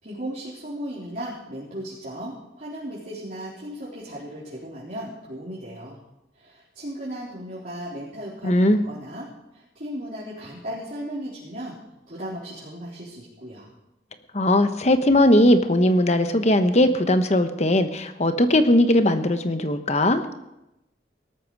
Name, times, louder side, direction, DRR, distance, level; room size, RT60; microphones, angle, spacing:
voice 1, 0.0-6.0 6.3-9.3 9.5-11.8 12.1-13.7, equal, 50° right, -8 dB, 3.9 m, -36 dB
voice 2, 8.4-8.8 14.3-20.2, left 1 dB, 40° left, 8 dB, 1.1 m, -19 dB
18.5 x 13.5 x 4.8 m, 0.90 s
head